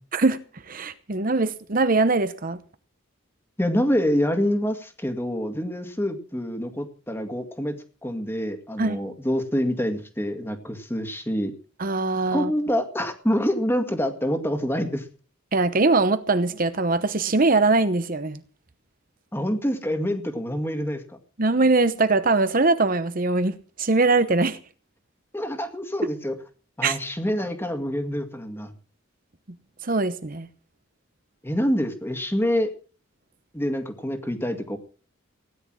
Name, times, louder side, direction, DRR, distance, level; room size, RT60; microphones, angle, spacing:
voice 1, 0.7-2.6 8.8-9.0 11.8-12.5 15.5-18.4 21.4-24.6 26.0-26.1 26.8-27.0 29.8-30.5, right 3 dB, 40° right, 0.9 m, -22 dB
voice 2, 3.6-7.8 8.0-11.5 12.3-15.1 19.3-21.0 25.3-26.4 26.8-28.7 31.4-32.7 33.5-34.8, equal, 10° left, 2.0 m, -26 dB
17.0 x 10.5 x 6.2 m
head